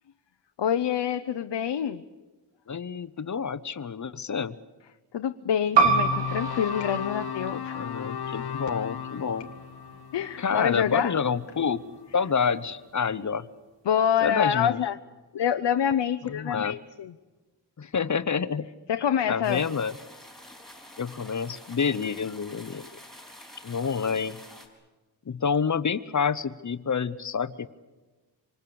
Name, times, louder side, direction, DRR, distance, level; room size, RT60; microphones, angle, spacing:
voice 1, 0.6-2.0 5.1-7.8 10.1-11.2 13.9-15.0 15.3-17.1 18.9-19.6, left 9 dB, 80° left, 9 dB, 0.8 m, -26 dB
voice 2, 2.7-4.5 7.7-9.5 10.4-11.8 12.1-13.5 14.2-14.8 16.2-16.7 17.8-18.7 19.3-19.9 21.0-22.9 23.6-24.4 25.3-27.7, left 6 dB, 40° left, 15 dB, 0.9 m, -28 dB
sound 1, 5.7-10.9, right 5 dB, 80° right, 3.0 m, -28 dB
sound 2, 5.8-12.1, left 8 dB, 60° left, 1.1 m, -36 dB
sound 3, 19.4-24.7, left 1 dB, ahead, 4.3 m, -48 dB
26.5 x 25.5 x 7.0 m, 1.2 s
wide cardioid pair, 155°, 43 cm